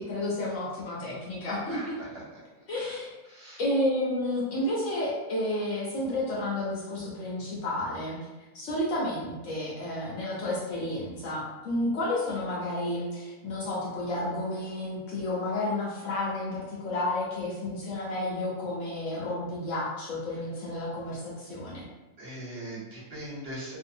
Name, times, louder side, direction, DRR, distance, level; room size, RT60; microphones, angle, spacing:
voice 1, 0.0-2.0 2.7-3.1 3.6-8.2 8.5-21.9, left 1 dB, 65° left, -5 dB, 0.9 m, -31 dB
voice 2, 1.7-2.2 2.7-3.0 3.3-3.6 22.2-23.8, right 1 dB, 45° right, -7 dB, 1.0 m, -40 dB
2.6 x 2.1 x 2.6 m, 1.2 s
omnidirectional pair, 1.6 m